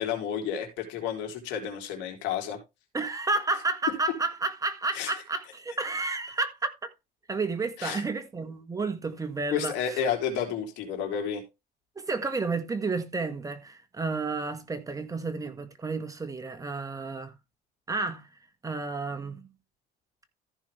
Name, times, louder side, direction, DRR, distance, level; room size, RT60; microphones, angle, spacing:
voice 1, 0.0-2.6 4.9-5.1 7.8-8.0 9.5-11.4, left 8 dB, 90° left, 3.3 m, -31 dB
voice 2, 2.9-6.7 7.3-10.0 12.1-17.3 17.9-18.3 18.6-19.5, right 3 dB, 20° right, 1.6 m, -31 dB
14.5 x 5.9 x 3.3 m
cardioid pair, 130°, 18 cm